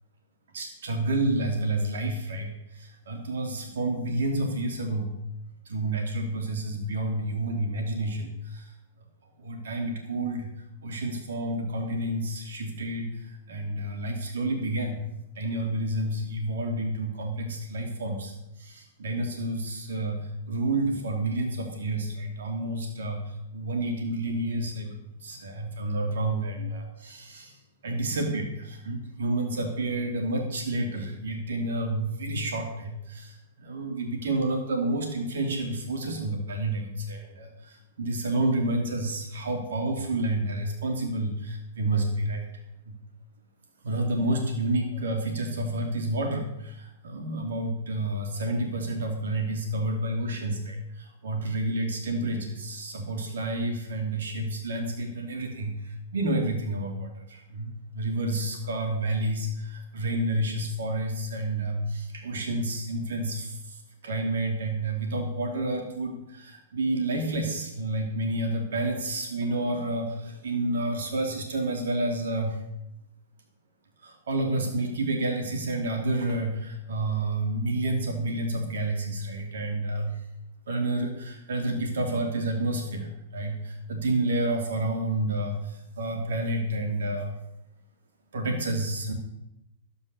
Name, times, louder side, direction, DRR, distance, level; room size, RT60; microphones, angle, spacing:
voice 1, 0.5-5.1 5.7-8.7 9.4-10.5 10.8-18.3 18.6-20.2 20.5-23.2 23.5-25.0 25.2-27.5 27.8-42.5 42.9-43.0 43.8-63.8 64.0-72.6 74.0-80.2 80.7-87.4 88.3-89.1, right 1 dB, 80° right, 3 dB, 2.6 m, -29 dB
12.0 x 9.7 x 6.7 m, 0.87 s
hypercardioid pair, 130°, 0 cm